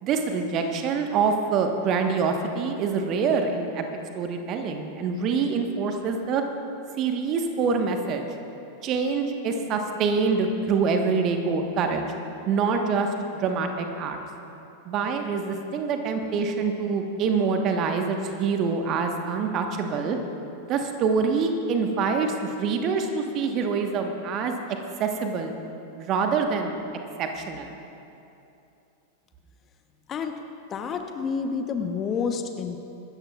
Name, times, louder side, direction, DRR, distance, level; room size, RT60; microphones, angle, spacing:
voice 1, 0.0-3.8 4.1-6.4 7.0-8.2 8.8-12.0 12.5-14.2 14.8-20.2 20.6-24.6 25.0-25.5 26.0-26.7 27.2-27.8, right 5 dB, 35° right, 4 dB, 1.2 m, -25 dB
voice 2, 30.7-32.8, left 5 dB, 25° left, 6 dB, 0.9 m, -29 dB
25.0 x 13.5 x 2.4 m, 2.8 s
figure-of-eight pair, 90°, 0 cm